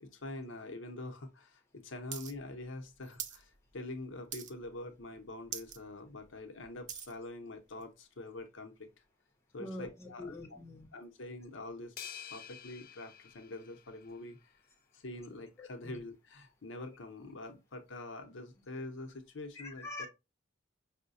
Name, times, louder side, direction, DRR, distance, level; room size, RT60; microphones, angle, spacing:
voice 1, 0.0-8.9 9.5-10.6 10.9-11.9 12.3-14.5 14.9-20.1, left 2 dB, 75° left, 0.7 m, -45 dB
sound 1, 2.1-2.3 2.6-3.4 3.8-4.0 4.3-4.8 5.1-5.2 5.4-5.8 6.2-7.2 7.8-7.9, right 8 dB, 40° right, 0.4 m, -42 dB
voice 2, 9.6-10.9 15.6-16.0 19.5-20.1, left 2 dB, 15° left, 0.9 m, -45 dB
sound 2, 12.0-14.5, left 10 dB, 45° left, 0.3 m, -49 dB
5.5 x 2.1 x 2.5 m
head